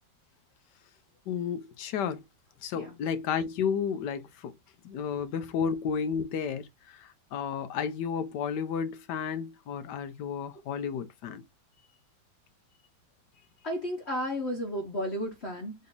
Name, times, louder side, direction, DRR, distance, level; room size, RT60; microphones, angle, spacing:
voice 1, 1.3-2.2 2.6-4.5 4.8-11.4, left 7 dB, 75° left, 1.1 m, -32 dB
voice 2, 13.6-15.9, equal, 45° left, 1.0 m, -33 dB
3.9 x 2.8 x 3.7 m
omnidirectional pair, 2.1 m